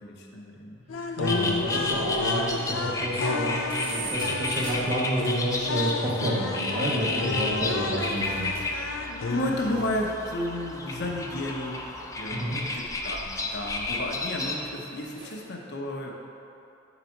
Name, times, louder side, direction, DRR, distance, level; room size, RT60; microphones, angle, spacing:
voice 1, 0.0-1.7 9.3-11.8 12.2-16.1, left 1 dB, 60° left, 0 dB, 0.8 m, -33 dB
sound 1, 0.9-10.1, left 3 dB, 75° left, 0.5 m, -32 dB
sound 2, 1.2-14.7, left 2 dB, 15° left, 0.5 m, -32 dB
voice 2, 1.2-8.5 12.3-12.6, right 1 dB, 30° right, -5 dB, 0.9 m, -29 dB
sound 3, 3.3-5.7 6.1-6.2 8.1-8.9 9.1-11.8 12.6-14.2 14.7-15.5, right 3 dB, 65° right, 1.3 m, -43 dB
8.8 x 4.0 x 4.5 m, 2.8 s
head